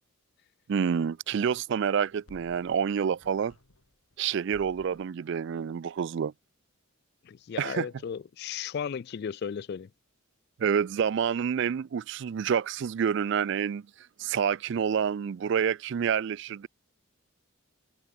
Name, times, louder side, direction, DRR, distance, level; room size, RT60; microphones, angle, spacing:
voice 1, 0.7-3.5 4.2-6.3 7.6-7.9 10.6-13.8 14.2-16.7, right 7 dB, 55° right, 0.3 m, -28 dB
sound 1, 2.0-4.2 4.5-5.2, left 1 dB, 75° left, 2.5 m, -56 dB
voice 2, 7.2-9.9, left 7 dB, 50° left, 0.3 m, -35 dB
head